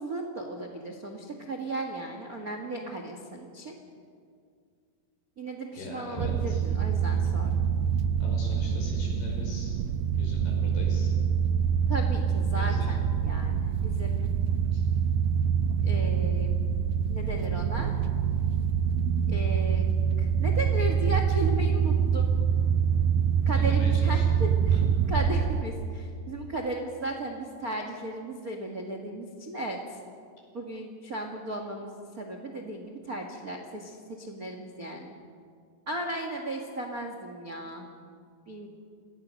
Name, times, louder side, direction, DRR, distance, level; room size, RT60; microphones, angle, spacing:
voice 1, 0.0-3.7 5.4-7.5 11.9-14.2 15.8-16.6 17.1-17.9 19.3-19.8 20.2-22.3 23.4-24.8 25.1-30.0 30.5-35.1 35.9-37.9 38.5-38.7, right 1 dB, 65° right, 3 dB, 0.8 m, -35 dB
voice 2, 5.8-6.6 8.2-9.7 10.2-11.1 12.5-12.9 14.7-14.9 23.5-24.3, left 2 dB, 70° left, 0 dB, 7.2 m, -41 dB
sound 1, 6.2-25.6, right 7 dB, 90° right, 1.8 m, -25 dB
28.5 x 18.5 x 6.5 m, 2.2 s
omnidirectional pair, 4.8 m